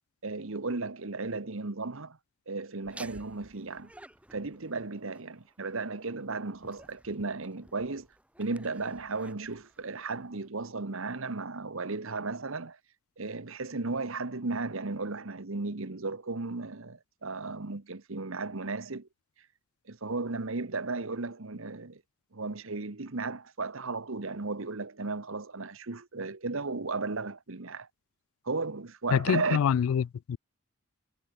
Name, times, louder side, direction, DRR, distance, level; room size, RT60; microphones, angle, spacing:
voice 1, 0.2-2.2 2.5-3.9 4.3-8.1 8.4-12.8 13.2-19.1 19.9-22.0 22.3-27.9 28.4-29.6, right 3 dB, 65° right, 1.2 m, -35 dB
Laughter, 2.8-10.5, right 1 dB, 5° right, 1.5 m, -54 dB
voice 2, 29.1-30.4, left 8 dB, 70° left, 0.3 m, -26 dB
head